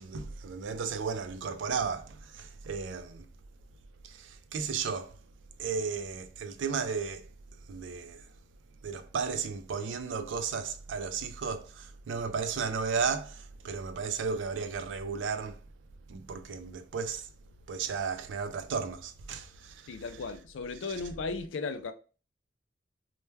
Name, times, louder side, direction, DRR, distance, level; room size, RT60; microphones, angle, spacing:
voice 1, 0.0-3.3 4.0-5.2 5.6-7.3 7.7-8.3 8.8-15.6 16.1-17.3 17.7-19.9, right 5 dB, 75° right, 0.4 m, -34 dB
voice 2, 19.9-21.9, left 4 dB, 85° left, 0.4 m, -36 dB
2.2 x 2.2 x 3.1 m
head